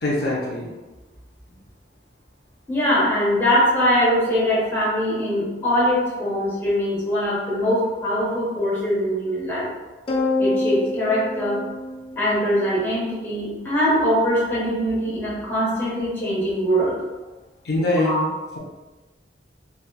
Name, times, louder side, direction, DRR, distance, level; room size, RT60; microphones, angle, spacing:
voice 1, 0.0-0.7 17.6-18.3, left 1 dB, 65° left, -5 dB, 0.7 m, -22 dB
voice 2, 2.7-9.7 10.4-11.6 12.2-16.9 18.0-18.2, equal, 15° left, -8 dB, 1.0 m, -22 dB
sound 1, 10.1-12.7, left 2 dB, 30° left, 0.4 m, -25 dB
3.9 x 2.3 x 2.2 m, 1.2 s
head